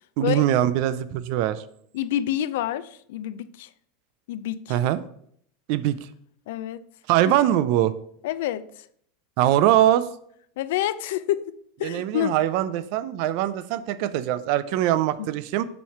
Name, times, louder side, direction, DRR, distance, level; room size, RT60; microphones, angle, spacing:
voice 1, 0.2-1.6 4.7-5.0 5.7-6.0 7.1-7.9 9.4-10.1 11.8-15.6, right 12 dB, 45° right, 0.4 m, -22 dB
voice 2, 1.9-3.7 4.3-4.8 6.5-6.8 7.2-7.3 8.2-8.9 10.6-11.5 11.8-12.3 15.2-15.3, left 12 dB, 65° left, 0.3 m, -28 dB
7.1 x 3.1 x 5.8 m
supercardioid pair, 180°, 0 cm